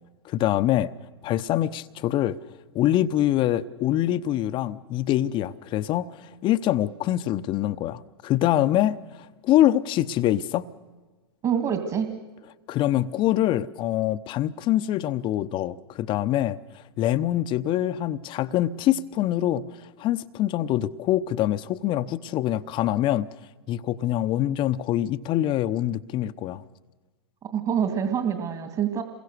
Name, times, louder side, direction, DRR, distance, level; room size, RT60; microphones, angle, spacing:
voice 1, 0.2-0.9 1.2-2.4 2.7-9.0 9.4-10.7 12.7-16.6 17.0-19.6 20.0-23.3 23.7-26.6, left 13 dB, 35° left, 12 dB, 0.9 m, -24 dB
voice 2, 11.4-12.1 27.4-29.0, right 8 dB, 30° right, 7 dB, 2.4 m, -26 dB
27.5 x 22.0 x 6.8 m, 1.3 s
hypercardioid pair, 110°, 14 cm